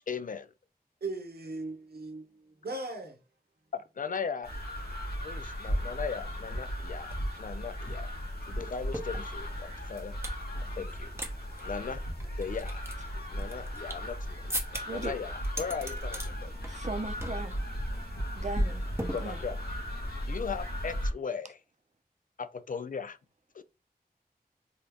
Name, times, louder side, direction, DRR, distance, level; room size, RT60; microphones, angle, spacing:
voice 1, 0.1-0.5 3.7-4.5 5.2-8.1 8.5-10.2 10.7-11.1 11.6-12.0 12.4-12.8 13.1-14.6 14.9-16.5 19.1-19.6 20.3-21.6 22.4-23.2 23.5-23.6, left 6 dB, 60° left, 0.4 m, -38 dB
voice 2, 1.0-3.2 10.5-10.8, right 2 dB, 80° right, 0.8 m, -39 dB
sound 1, 4.4-21.1, equal, 75° left, 1.5 m, -36 dB
sound 2, 7.1-7.2 7.4-10.4 10.8-11.3 11.6-11.7 12.2-14.1 14.5-15.1 15.4-16.3 16.6-16.9 17.2-17.5 17.8-18.0 19.0-19.7, right 1 dB, 15° right, 0.9 m, -39 dB
voice 3, 16.7-17.6 18.4-18.9 19.2-19.4, right 3 dB, 45° right, 0.6 m, -37 dB
3.8 x 2.2 x 3.4 m
wide cardioid pair, 50°, 16 cm